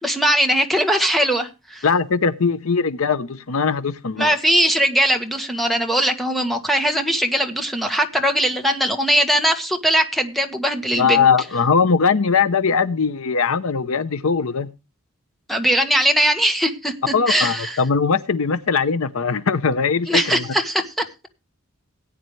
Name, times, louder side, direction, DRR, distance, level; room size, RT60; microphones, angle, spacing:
voice 1, 0.0-1.9 4.2-11.2 15.5-17.8 20.1-21.3, right 1 dB, ahead, 1.6 m, -20 dB
voice 2, 1.8-4.3 10.9-14.7 17.1-20.5, left 5 dB, 70° left, 0.7 m, -20 dB
17.5 x 9.3 x 3.2 m
head